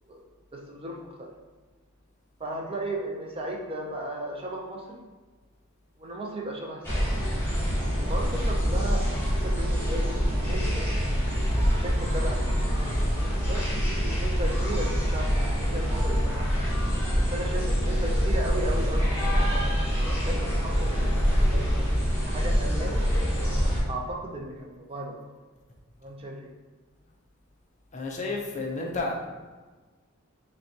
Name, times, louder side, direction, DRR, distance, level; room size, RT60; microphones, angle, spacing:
voice 1, 0.5-1.3 2.4-5.0 6.0-7.1 8.1-10.9 11.6-12.7 13.3-16.5 17.2-19.6 20.1-21.9 22.2-23.0 23.9-25.2 26.0-26.5, right 1 dB, 25° right, 0 dB, 0.4 m, -36 dB
sound 1, 6.8-23.8, equal, 10° left, 1.1 m, -25 dB
voice 2, 27.9-29.3, left 3 dB, 35° left, 0 dB, 0.5 m, -31 dB
5.4 x 2.2 x 2.7 m, 1.3 s
head